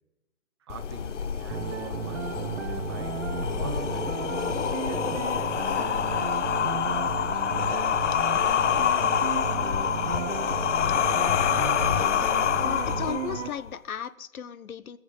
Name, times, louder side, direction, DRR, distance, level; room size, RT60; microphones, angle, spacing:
voice 1, 0.6-3.2 3.5-4.4 4.8-8.3 8.7-10.8, right 7 dB, 20° right, 7 dB, 0.8 m, -46 dB
sound 1, 0.7-13.7, left 9 dB, 60° left, 0.7 m, -27 dB
sound 2, 1.5-13.5, right 10 dB, 55° right, 0.8 m, -34 dB
voice 2, 11.9-15.0, left 8 dB, 90° left, 15 dB, 1.0 m, -36 dB
16.5 x 7.1 x 9.5 m, 1.0 s
hypercardioid pair, 165°, 42 cm